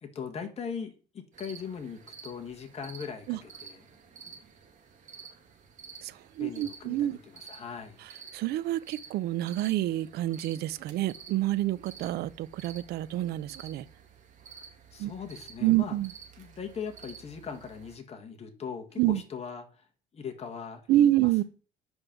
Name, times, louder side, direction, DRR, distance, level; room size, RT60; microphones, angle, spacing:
voice 1, 0.0-3.8 4.3-4.4 6.4-8.0 14.9-16.0 16.4-19.9 20.1-21.3, left 6 dB, 40° left, 1.6 m, -40 dB
sound 1, 1.3-18.0, right 6 dB, 50° right, 2.1 m, -51 dB
voice 2, 6.0-7.2 8.3-13.9 15.0-15.1 15.6-16.1 19.0-19.2 20.9-21.4, right 14 dB, 75° right, 0.5 m, -27 dB
8.0 x 5.3 x 4.5 m
cardioid pair, 110°, 17 cm